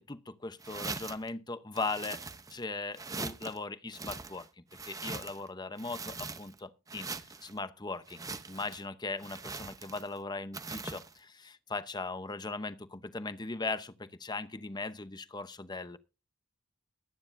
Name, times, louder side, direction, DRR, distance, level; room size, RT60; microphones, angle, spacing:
voice 1, 0.0-2.2 2.5-4.5 4.8-16.0, left 3 dB, 20° left, 0.8 m, -39 dB
sound 1, 0.6-1.3 1.7-2.6 2.9-3.6 3.9-5.5 5.8-6.6 6.9-7.5 8.1-8.8 9.2-10.2 10.5-11.1, right 4 dB, 15° right, 0.7 m, -42 dB
22.5 x 9.6 x 2.6 m
head